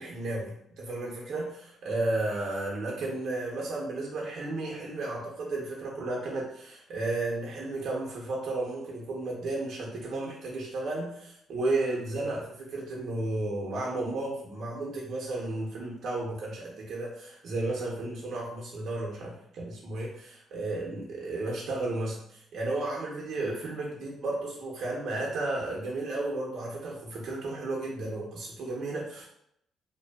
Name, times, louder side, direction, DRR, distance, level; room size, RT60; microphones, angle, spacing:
voice 1, 0.0-29.3, right 2 dB, 65° right, -3 dB, 0.6 m, -33 dB
2.5 x 2.2 x 2.2 m, 0.74 s
cardioid pair, 90°, 0 cm